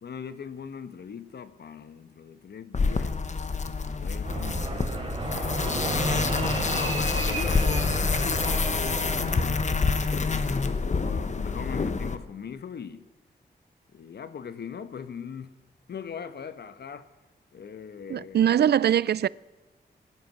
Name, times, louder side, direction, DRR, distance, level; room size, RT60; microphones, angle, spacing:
voice 1, 0.0-3.2 3.9-5.2 5.5-6.4 6.7-10.3 11.0-13.1 13.9-15.6 15.9-17.1 17.5-18.6 19.0-19.2, left 7 dB, 75° left, 1.2 m, -40 dB
sound 1, 2.7-12.2, left 4 dB, 45° left, 1.2 m, -27 dB
Fixed-wing aircraft airplane, 4.2-9.9, right 2 dB, 30° right, 3.2 m, -32 dB
voice 2, 18.1-19.3, right 10 dB, 70° right, 0.4 m, -22 dB
20.0 x 11.0 x 5.9 m
wide cardioid pair, 100°, 17 cm